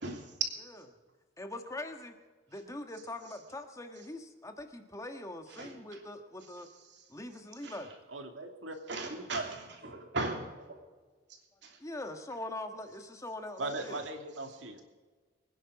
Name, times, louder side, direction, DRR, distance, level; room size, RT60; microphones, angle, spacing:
voice 1, 0.0-0.3 5.6-5.7 7.6-7.7 8.9-9.5 9.9-10.7 11.6-11.8, right 2 dB, 65° right, 2 dB, 3.0 m, -37 dB
voice 2, 1.4-2.1 2.5-6.7 7.1-7.9 11.8-14.0, left 1 dB, 15° left, 5 dB, 1.5 m, -42 dB
voice 3, 8.1-8.8 9.1-9.6 13.6-14.8, right 2 dB, 90° right, 5 dB, 2.2 m, -39 dB
24.5 x 10.0 x 4.9 m, 1.4 s
head